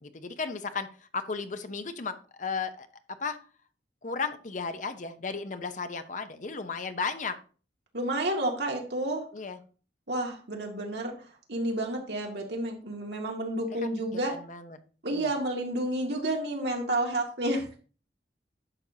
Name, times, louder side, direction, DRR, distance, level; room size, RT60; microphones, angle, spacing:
voice 1, 0.0-2.9 3.2-3.4 4.0-7.4 9.3-9.6 13.7-13.9 14.3-14.8 15.1-15.3, left 4 dB, 45° left, 9 dB, 0.8 m, -34 dB
voice 2, 7.9-9.2 10.1-11.1 11.5-14.3 15.0-17.8, right 1 dB, 70° right, 0 dB, 2.2 m, -30 dB
11.0 x 6.6 x 2.8 m, 0.39 s
head